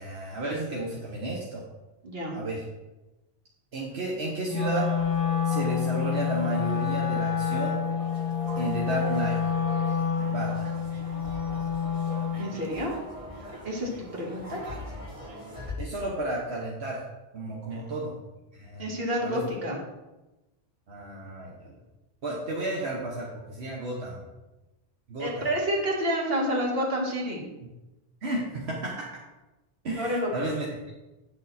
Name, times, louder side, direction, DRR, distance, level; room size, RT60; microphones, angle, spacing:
voice 1, 0.0-1.6 2.3-2.6 3.7-4.9 5.4-7.8 8.6-9.4 10.2-10.8 15.8-17.0 17.3-18.1 18.5-18.8 19.2-19.5 20.9-21.8 22.2-24.3 25.1-25.4 27.6-27.7 28.2-29.1 29.8-30.7, right 2 dB, 85° right, -3 dB, 1.5 m, -32 dB
voice 2, 2.0-2.4 12.4-12.9 13.6-14.6 17.7-17.8 18.8-19.8 25.2-27.5 30.0-30.3, equal, 65° right, -1 dB, 2.1 m, -29 dB
Wind instrument woodwind instrument, 4.5-12.5, left 7 dB, 35° left, 1.0 m, -28 dB
sound 1, 4.6-15.7, right 1 dB, 30° right, 1.7 m, -40 dB
9.2 x 6.6 x 4.2 m, 1.1 s
omnidirectional pair, 1.1 m